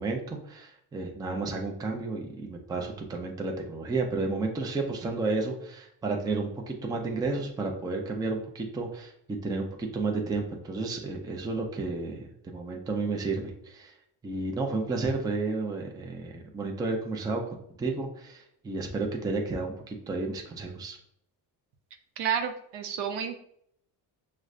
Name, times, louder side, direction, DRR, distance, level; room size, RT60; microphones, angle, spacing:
voice 1, 0.0-13.9 14.2-17.4 17.8-21.0, right 3 dB, 10° right, 2 dB, 0.4 m, -32 dB
voice 2, 22.2-23.3, right 7 dB, 75° right, 6 dB, 0.7 m, -30 dB
6.1 x 2.1 x 2.4 m, 0.71 s
cardioid pair, 130°, 42 cm